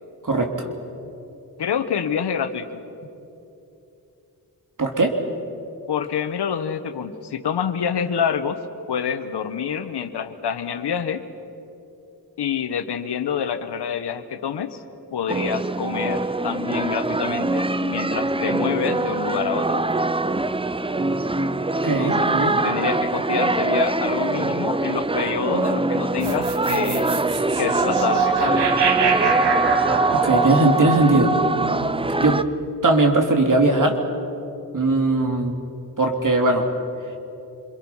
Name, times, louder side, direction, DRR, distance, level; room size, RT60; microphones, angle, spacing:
voice 1, 0.2-0.7 4.8-5.1 21.8-22.6 30.2-31.3 32.2-32.4 32.8-34.0 34.7-35.5 36.0-36.7, right 2 dB, 50° right, 3 dB, 3.1 m, -19 dB
voice 2, 1.6-2.8 5.9-8.6 8.9-11.2 12.4-14.8 15.1-19.8 21.8-27.1 27.6-28.6, left 7 dB, 80° left, 10 dB, 1.2 m, -27 dB
sound 1, 15.3-32.4, right 2 dB, 15° right, 0.6 m, -23 dB
sound 2, 26.2-32.5, right 6 dB, 80° right, 1.4 m, -25 dB
27.0 x 22.5 x 5.6 m, 2.9 s
cardioid pair, 55°, 40 cm